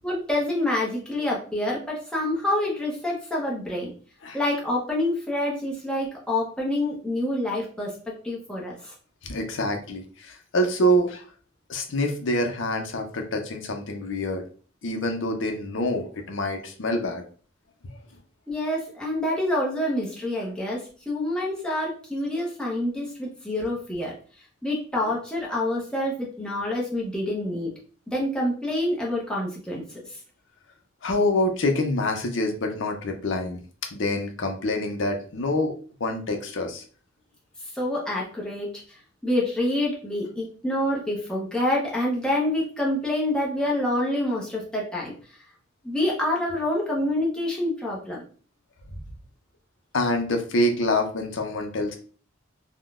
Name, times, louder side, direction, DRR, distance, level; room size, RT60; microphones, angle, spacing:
voice 1, 0.0-3.9 4.3-8.0 8.2-8.9 18.5-24.1 24.6-27.7 28.1-29.8 30.1-30.2 37.7-39.0 39.2-45.1 45.8-48.2, left 1 dB, 5° left, -4 dB, 0.7 m, -27 dB
voice 2, 9.2-11.2 11.7-14.4 14.8-17.2 17.8-18.0 31.0-33.6 33.9-35.7 36.0-36.8 49.9-52.0, left 1 dB, 60° left, 4 dB, 0.6 m, -26 dB
3.6 x 2.2 x 2.4 m, 0.41 s
head